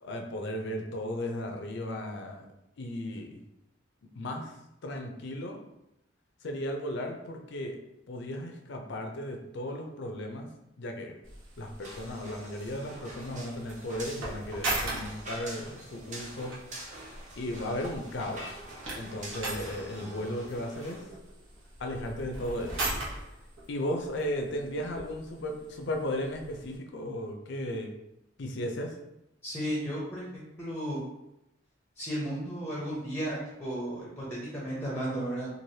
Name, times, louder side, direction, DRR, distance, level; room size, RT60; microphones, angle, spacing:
voice 1, 0.0-2.5 2.8-3.4 4.1-4.6 4.8-5.6 6.4-7.8 8.1-10.5 10.8-11.1 11.6-16.5 17.4-18.5 19.0-21.1 21.8-22.9 23.7-27.9 28.4-28.9, left 1 dB, 60° left, 3 dB, 0.5 m, -35 dB
sound 1, 11.2-26.8, right 2 dB, 80° right, 1.0 m, -40 dB
sound 2, 11.8-21.0, right 1 dB, 40° right, 0.6 m, -45 dB
voice 2, 29.4-31.0 32.0-35.5, right 1 dB, 10° left, -6 dB, 0.7 m, -34 dB
3.1 x 2.5 x 2.7 m, 0.87 s
head